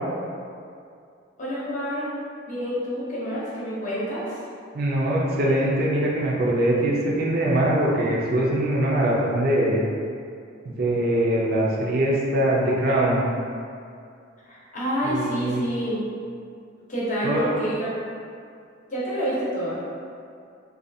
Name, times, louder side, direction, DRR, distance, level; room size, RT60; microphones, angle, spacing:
voice 1, 1.4-2.1 2.5-4.4 14.4-16.0 16.9-18.0 18.9-19.8, equal, 40° left, -8 dB, 0.7 m, -28 dB
voice 2, 4.7-9.8 10.7-13.2 15.1-15.6 17.2-17.5, right 1 dB, 50° right, -4 dB, 0.4 m, -22 dB
2.6 x 2.3 x 2.6 m, 2.4 s
head